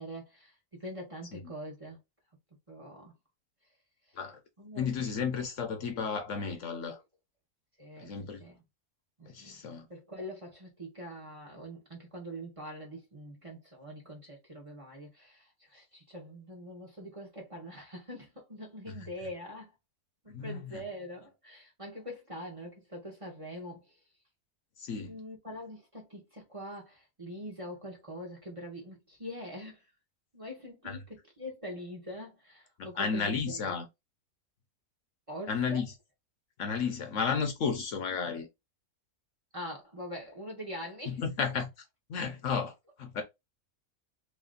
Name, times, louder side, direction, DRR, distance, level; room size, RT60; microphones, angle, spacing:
voice 1, 0.0-2.0 2.7-3.1 4.6-4.9 5.2-5.3 7.8-8.1 8.4-8.6 9.2-9.6 9.9-19.7 20.2-23.9 25.0-29.8 30.3-33.6 35.3-35.8 39.5-41.2, equal, 25° right, 1.1 m, -43 dB
voice 2, 4.8-7.0 8.0-8.4 9.3-9.9 18.9-19.0 20.3-20.8 24.8-25.1 30.8-31.0 32.8-33.9 35.5-35.9 36.6-38.5 41.1-41.7 42.1-43.2, left 6 dB, 65° left, 1.0 m, -33 dB
3.1 x 3.0 x 3.8 m
omnidirectional pair, 1.5 m